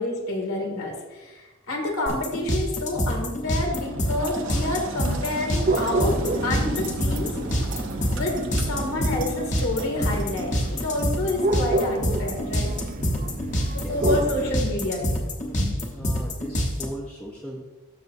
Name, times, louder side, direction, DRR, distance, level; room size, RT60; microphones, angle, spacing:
voice 1, 0.0-7.3 8.1-8.3 8.7-12.7 13.7-15.2 15.6-15.7, left 2 dB, 80° left, 0 dB, 2.4 m, -28 dB
sound 1, 2.1-16.8, equal, 35° left, 1.2 m, -26 dB
Engine, 3.4-11.0, right 3 dB, 65° right, 1.0 m, -40 dB
sound 2, 5.7-14.5, right 2 dB, 35° right, 0.5 m, -30 dB
voice 2, 13.8-14.1 15.5-15.6 15.9-17.6, equal, 5° left, -2 dB, 0.7 m, -38 dB
13.0 x 6.8 x 2.7 m, 1.2 s
head